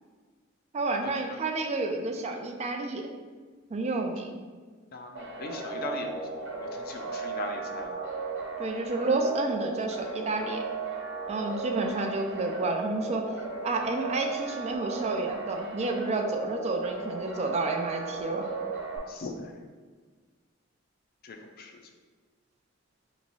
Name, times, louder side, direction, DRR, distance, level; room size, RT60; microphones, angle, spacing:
voice 1, 0.7-3.1 3.7-4.4 8.6-10.6 11.3-13.3 13.6-18.5, right 2 dB, 35° right, 4 dB, 0.4 m, -30 dB
voice 2, 4.9-6.1 6.4-7.9 18.9-19.5 21.2-21.7, left 3 dB, 50° left, 3 dB, 0.5 m, -39 dB
sound 1, 5.1-19.0, right 4 dB, 65° right, 1.0 m, -36 dB
3.4 x 3.0 x 4.0 m, 1.5 s
head